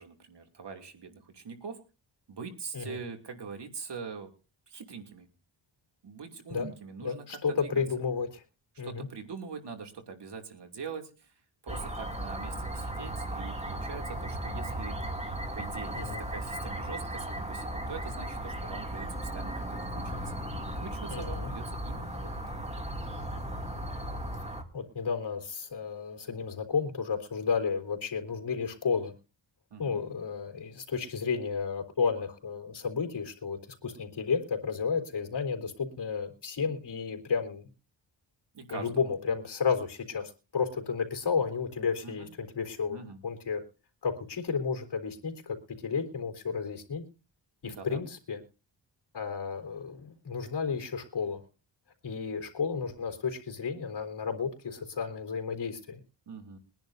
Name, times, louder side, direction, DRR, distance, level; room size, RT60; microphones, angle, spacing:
voice 1, 0.0-1.8 2.3-4.3 4.7-5.3 6.0-7.8 8.8-11.3 11.6-15.0 15.5-19.1 19.3-20.3 20.6-22.6 29.7-30.0 38.5-39.1 42.0-42.3 42.9-43.2 47.6-48.0 56.3-56.6, right 5 dB, 60° right, 4 dB, 2.8 m, -43 dB
voice 2, 7.0-8.4 8.8-9.1 15.9-16.2 21.1-21.5 24.7-29.1 29.8-37.7 38.7-43.6 44.0-47.0 47.6-48.4 49.1-51.4 52.0-56.0, left 5 dB, 60° left, 6 dB, 3.7 m, -32 dB
sound 1, 11.7-24.6, right 1 dB, 15° right, 2.5 m, -36 dB
23.0 x 10.5 x 2.7 m, 0.33 s
cardioid pair, 95°, 47 cm